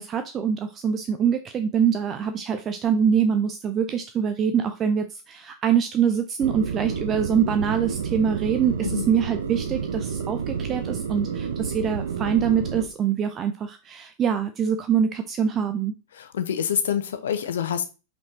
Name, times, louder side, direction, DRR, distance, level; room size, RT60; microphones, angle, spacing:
voice 1, 0.0-15.9, right 7 dB, 25° right, 8 dB, 0.5 m, -24 dB
sound 1, 6.4-12.9, right 7 dB, 65° right, 0.7 m, -30 dB
voice 2, 16.1-17.8, left 9 dB, 65° left, 10 dB, 0.9 m, -26 dB
5.3 x 4.6 x 3.9 m, 0.31 s
figure-of-eight pair, 90°, 0 cm